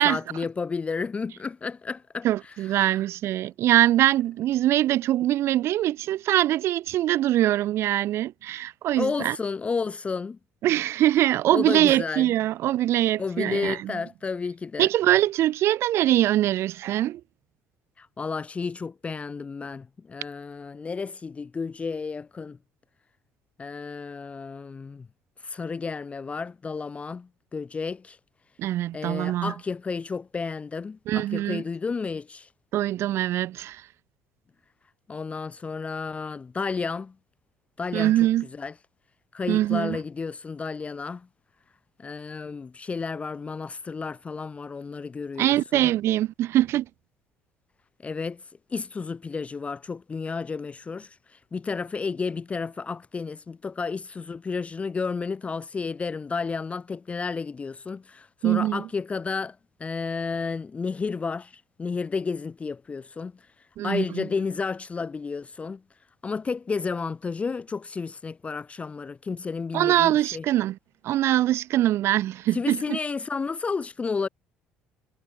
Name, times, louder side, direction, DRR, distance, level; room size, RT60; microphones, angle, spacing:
voice 1, 0.0-2.3 8.9-10.4 11.5-12.3 13.2-14.9 18.0-22.6 23.6-25.1 25.4-28.2 28.9-32.5 35.1-37.1 37.8-38.1 38.5-38.7 39.3-41.3 42.0-45.9 48.0-48.4 48.7-51.2 51.5-59.6 59.8-63.3 63.8-65.8 66.2-70.5 72.5-74.3, left 4 dB, 25° left, 0.4 m, -31 dB
voice 2, 2.2-9.4 10.6-13.9 14.8-17.2 28.6-29.5 31.1-31.6 32.7-33.8 37.9-38.5 39.5-40.0 45.4-46.9 58.4-58.8 63.8-64.2 69.7-70.8 71.0-73.0, right 13 dB, 60° right, 0.4 m, -23 dB
supercardioid pair, 75°, 5 cm